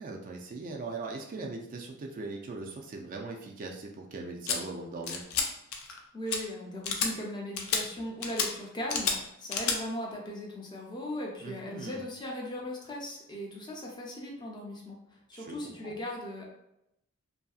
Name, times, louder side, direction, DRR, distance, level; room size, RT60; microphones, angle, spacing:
voice 1, 0.0-5.2 11.4-12.0 15.3-15.9, right 3 dB, 40° right, 1 dB, 0.3 m, -40 dB
sound 1, 4.5-4.6 5.1-5.5 5.7-6.0 6.3-6.4 6.8-7.1 7.6-7.8 8.2-8.5 8.9-9.2 9.5-9.8, left 5 dB, 75° left, 0.5 m, -29 dB
voice 2, 6.1-16.6, left 1 dB, 20° left, -2 dB, 0.5 m, -38 dB
2.7 x 2.6 x 2.3 m, 0.83 s
head